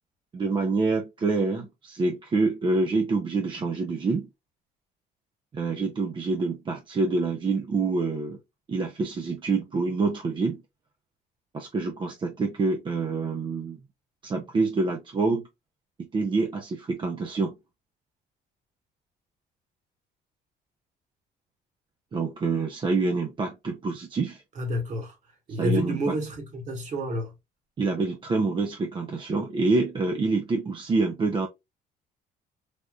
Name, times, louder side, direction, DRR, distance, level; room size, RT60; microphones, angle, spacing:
voice 1, 0.3-4.3 5.5-8.4 8.7-10.6 11.5-13.8 14.2-15.4 16.0-17.5 22.1-24.4 25.6-26.0 27.8-31.5, right 3 dB, 30° right, 0.5 m, -26 dB
voice 2, 24.5-25.2 25.5-27.3, equal, 45° right, 1.4 m, -29 dB
3.4 x 2.6 x 2.3 m
cardioid pair, 110°, 17 cm